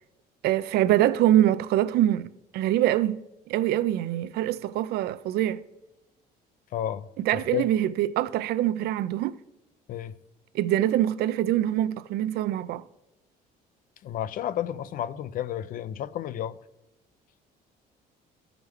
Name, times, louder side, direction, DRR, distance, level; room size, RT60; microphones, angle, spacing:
voice 1, 0.4-5.6 7.2-9.4 10.5-12.8, right 13 dB, 70° right, 0.4 m, -24 dB
voice 2, 6.7-7.1 7.5-7.7 9.9-10.2 14.0-16.6, left 11 dB, 55° left, 0.4 m, -31 dB
13.5 x 5.0 x 3.2 m
cardioid pair, 110°, 17 cm